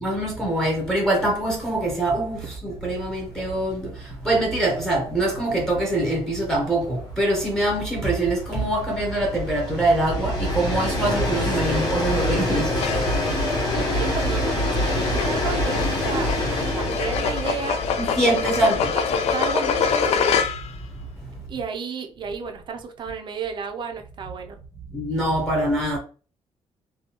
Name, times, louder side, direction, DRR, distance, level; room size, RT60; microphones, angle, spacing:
voice 1, 0.0-3.9 4.2-12.9 18.0-18.9 24.9-26.0, right 1 dB, 5° left, 0.7 m, -24 dB
Train, 3.0-3.1 3.4-3.5 3.8-21.2, left 1 dB, 35° left, 1.2 m, -27 dB
voice 2, 11.6-12.0 13.7-16.3 16.7-17.8 18.4-20.2 21.5-24.6, right 6 dB, 45° right, 0.5 m, -33 dB
sound 1, 12.7-20.8, left 6 dB, 70° left, 0.4 m, -26 dB
3.4 x 2.3 x 2.8 m
cardioid pair, 155°, 11 cm